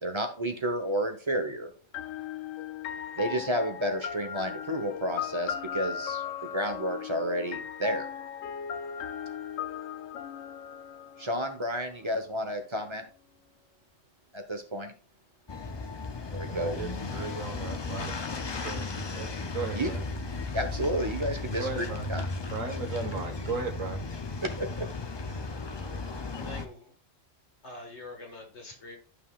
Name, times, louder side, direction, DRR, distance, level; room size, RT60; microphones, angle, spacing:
voice 1, 0.0-1.7 3.2-8.1 11.2-13.0 14.3-14.9 16.3-16.8 19.7-19.9 20.5-22.2 24.4-24.9 25.3-25.4, equal, 25° right, 6 dB, 0.9 m, -31 dB
sound 1, 1.9-11.7, left 8 dB, 85° left, 1.0 m, -37 dB
sound 2, 15.5-26.7, left 3 dB, 35° left, 0.4 m, -35 dB
voice 2, 16.5-18.1 18.6-20.0 21.6-22.1 22.5-24.0, right 3 dB, 90° right, 5 dB, 1.7 m, -36 dB
voice 3, 26.4-26.9 27.6-29.0, left 2 dB, 60° left, 2 dB, 1.9 m, -44 dB
12.0 x 5.4 x 2.4 m, 0.39 s
omnidirectional pair, 1.3 m